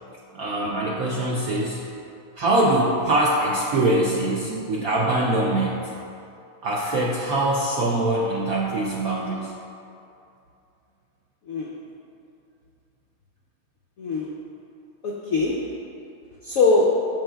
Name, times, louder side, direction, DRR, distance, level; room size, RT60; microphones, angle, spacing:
voice 1, 0.3-1.8 2.4-5.8 6.6-9.5, right 1 dB, 75° right, -3 dB, 0.8 m, -23 dB
voice 2, 1.0-1.4 11.5-11.8 14.0-14.4 15.0-15.7 16.4-17.1, left 3 dB, 85° left, -2 dB, 0.7 m, -23 dB
13.0 x 4.7 x 2.2 m, 2.6 s
omnidirectional pair, 2.2 m